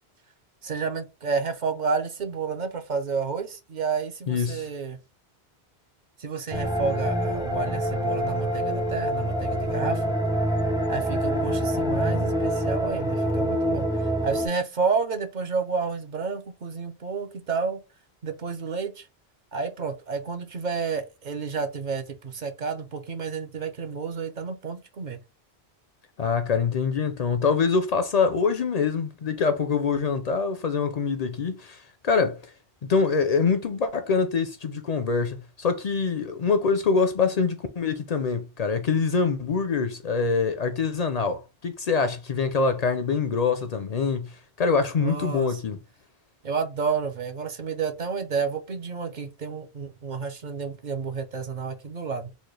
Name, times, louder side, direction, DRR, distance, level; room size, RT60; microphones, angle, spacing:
voice 1, 0.6-5.0 6.2-10.1 10.9-17.8 18.2-19.1 19.5-25.2 45.0-45.6 46.4-52.3, right 5 dB, 55° right, 0.6 m, -30 dB
voice 2, 4.3-4.7 26.2-32.5 32.8-45.8, left 5 dB, 55° left, 0.4 m, -25 dB
sound 1, 6.5-14.5, equal, 5° right, 0.4 m, -26 dB
4.1 x 2.2 x 3.2 m
omnidirectional pair, 1.1 m